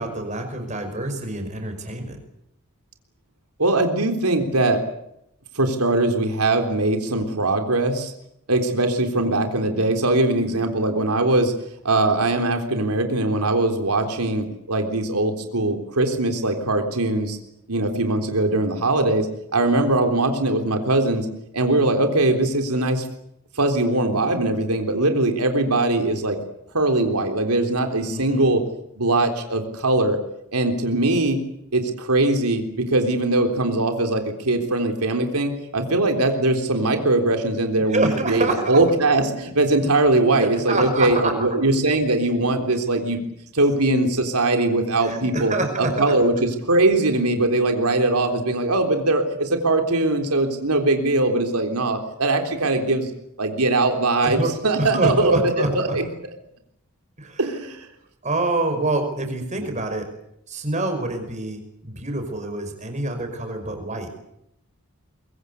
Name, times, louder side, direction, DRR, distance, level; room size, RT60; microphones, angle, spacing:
voice 1, 0.0-2.2 28.1-28.5 37.9-38.8 40.4-41.3 45.0-46.2 54.2-54.5 54.8-56.0 57.2-57.4 58.2-60.1 60.5-64.1, right 2 dB, 30° right, 6 dB, 5.4 m, -26 dB
voice 2, 3.6-4.8 5.6-8.1 8.5-11.5 11.8-17.4 17.7-19.3 19.5-21.3 21.5-23.0 23.6-26.4 26.7-28.6 29.0-30.2 30.5-31.4 31.7-43.2 43.5-53.1 53.4-56.1 57.4-57.8 59.6-59.7, right 2 dB, 90° right, 5 dB, 3.6 m, -21 dB
23.5 x 23.0 x 8.3 m, 0.77 s
head